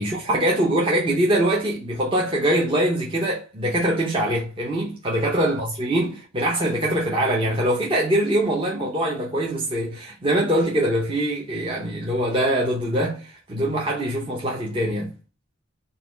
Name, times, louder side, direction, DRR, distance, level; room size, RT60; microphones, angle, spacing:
voice 1, 0.0-15.1, right 1 dB, 25° right, 0.6 m, -23 dB
4.0 x 2.3 x 3.7 m
head